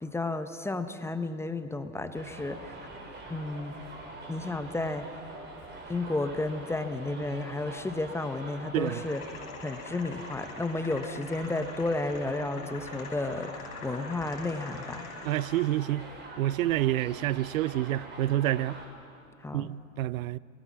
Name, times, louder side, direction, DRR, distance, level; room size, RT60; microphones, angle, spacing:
voice 1, 0.0-2.9 3.3-3.8 4.3-5.1 5.9-15.0 19.4-19.7, left 2 dB, 5° left, 0.7 m, -32 dB
Subway metro underground, 2.1-18.9, right 2 dB, 25° right, 4.5 m, -45 dB
sound 1, 8.8-15.8, left 6 dB, 85° left, 3.3 m, -46 dB
voice 2, 15.2-16.1 16.4-18.8 19.5-20.4, right 14 dB, 75° right, 0.5 m, -28 dB
24.5 x 18.5 x 6.0 m
hypercardioid pair, 115°, 41 cm